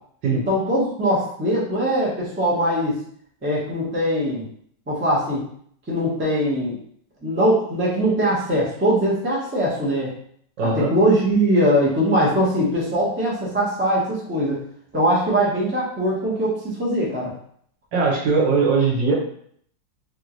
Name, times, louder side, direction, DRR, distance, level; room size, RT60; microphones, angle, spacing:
voice 1, 0.3-2.9 3.4-4.4 4.9-5.4 5.9-6.8 7.2-10.1 10.7-14.6 14.9-17.3, equal, 10° right, -6 dB, 0.5 m, -21 dB
voice 2, 10.6-10.9 17.9-19.1, right 4 dB, 70° right, -3 dB, 1.5 m, -20 dB
3.5 x 2.5 x 3.0 m, 0.63 s
omnidirectional pair, 2.1 m